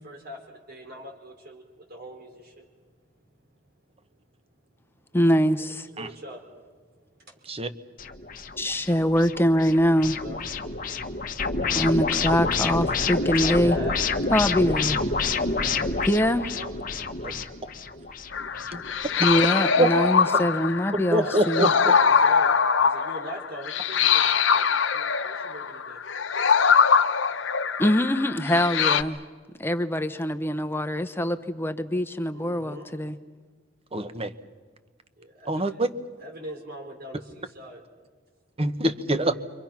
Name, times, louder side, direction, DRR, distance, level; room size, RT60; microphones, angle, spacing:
voice 1, 0.0-2.7 5.6-6.6 6.9-7.8 8.3-8.6 10.0-10.4 13.2-14.0 16.5-16.7 21.2-26.0 32.3-32.9 35.2-35.8 36.2-37.8, equal, 55° right, 2 dB, 4.9 m, -42 dB
voice 2, 5.1-5.9 8.6-10.2 11.7-13.8 14.3-15.0 16.1-16.6 19.2-21.7 27.8-29.2 29.6-33.2, equal, 10° left, 10 dB, 0.9 m, -23 dB
sound 1, 8.0-19.5, left 4 dB, 45° left, 1.5 m, -28 dB
sound 2, 18.3-29.0, left 6 dB, 70° left, 0.9 m, -23 dB
voice 3, 21.1-21.7 33.9-34.3 35.5-35.9 38.6-39.3, right 1 dB, 30° right, 10 dB, 1.2 m, -24 dB
29.5 x 25.0 x 5.9 m, 1.4 s
head